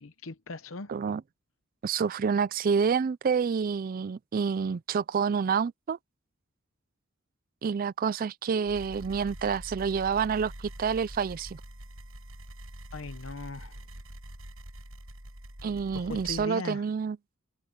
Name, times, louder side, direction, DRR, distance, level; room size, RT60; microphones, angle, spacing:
voice 1, 0.0-0.9 12.9-13.8 15.9-16.8, left 3 dB, 70° left, 0.8 m, -39 dB
voice 2, 0.9-1.2 1.8-6.0 7.6-11.6 15.6-17.2, right 6 dB, 45° right, 0.3 m, -28 dB
sound 1, 8.7-16.5, right 1 dB, 80° right, 7.6 m, -45 dB
head